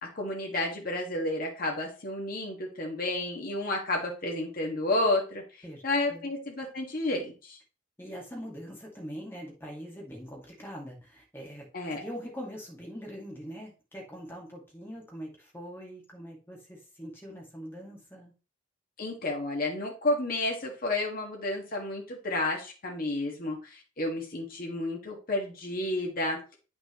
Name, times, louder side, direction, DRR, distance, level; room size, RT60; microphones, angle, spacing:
voice 1, 0.0-7.6 11.7-12.1 19.0-26.6, left 2 dB, 45° left, 0 dB, 1.8 m, -31 dB
voice 2, 8.0-18.3, equal, 10° left, -1 dB, 2.2 m, -43 dB
8.7 x 6.2 x 3.1 m, 0.33 s
head